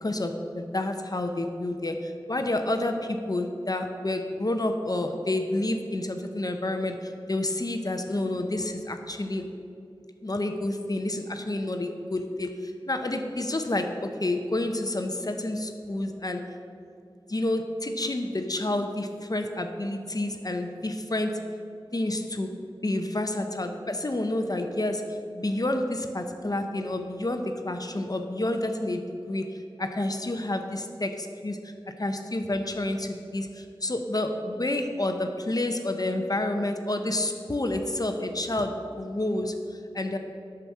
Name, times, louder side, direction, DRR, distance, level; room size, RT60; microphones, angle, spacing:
voice 1, 0.0-9.5 10.2-16.4 17.3-21.4 21.9-22.5 22.8-29.5 29.8-40.2, left 1 dB, 45° left, 5 dB, 0.7 m, -29 dB
8.1 x 5.9 x 7.2 m, 2.5 s
wide cardioid pair, 45°, 9 cm